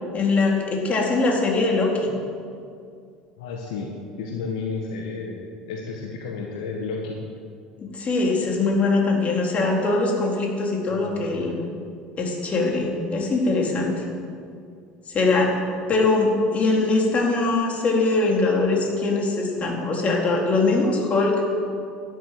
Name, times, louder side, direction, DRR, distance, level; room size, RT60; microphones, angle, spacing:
voice 1, 0.1-2.1 7.8-11.5 12.2-13.9 15.1-15.6 15.9-21.4, left 3 dB, 35° left, 0 dB, 3.8 m, -22 dB
voice 2, 3.4-3.9 4.2-7.2 10.9-11.6, left 4 dB, 70° left, 0 dB, 1.7 m, -32 dB
12.5 x 11.0 x 7.8 m, 2.3 s
figure-of-eight pair, 70°, 4 cm